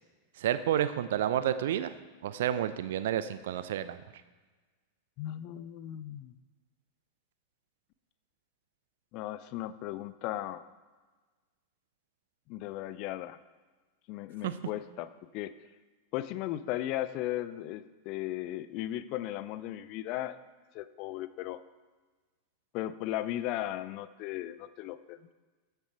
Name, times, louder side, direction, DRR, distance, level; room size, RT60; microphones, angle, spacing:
voice 1, 0.4-1.9 2.2-4.0 14.4-14.5, right 11 dB, 55° right, 13 dB, 0.6 m, -30 dB
voice 2, 5.2-6.3 9.1-10.6 12.5-13.4 14.1-15.1 15.3-15.5 16.1-20.4 20.7-21.6 22.7-25.2, left 14 dB, 40° left, 14 dB, 0.5 m, -36 dB
15.0 x 6.8 x 4.6 m, 1.3 s
figure-of-eight pair, 90°, 0 cm